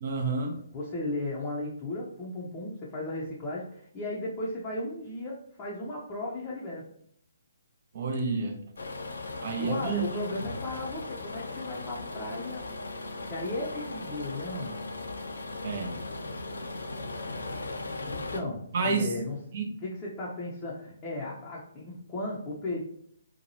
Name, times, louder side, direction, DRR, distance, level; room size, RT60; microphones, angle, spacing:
voice 1, 0.0-0.6 7.9-8.6 9.4-10.1 15.6-16.0 18.7-19.2 19.5-19.7, right 4 dB, 45° right, 4 dB, 0.5 m, -29 dB
voice 2, 0.7-6.9 9.6-12.7 13.0-14.8 18.0-19.4 19.8-22.8, left 2 dB, 20° left, -5 dB, 0.6 m, -35 dB
sound 1, 8.8-18.4, left 2 dB, 65° left, 0.4 m, -38 dB
2.8 x 2.2 x 2.7 m, 0.67 s
figure-of-eight pair, 135°, 0 cm